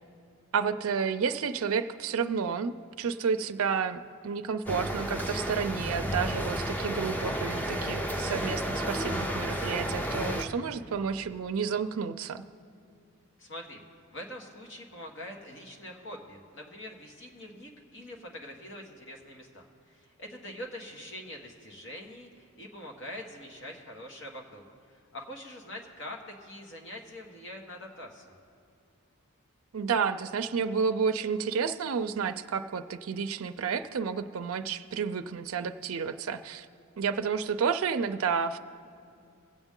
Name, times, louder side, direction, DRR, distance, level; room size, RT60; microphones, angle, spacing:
voice 1, 0.5-12.4 29.7-36.7 37.0-38.6, right 6 dB, 75° right, 9 dB, 0.4 m, -31 dB
sound 1, 4.7-10.4, equal, 10° left, 0.6 m, -32 dB
voice 2, 13.4-13.8 14.1-28.4, left 1 dB, 60° left, 1 dB, 1.6 m, -44 dB
21.0 x 8.0 x 3.7 m, 2.4 s
head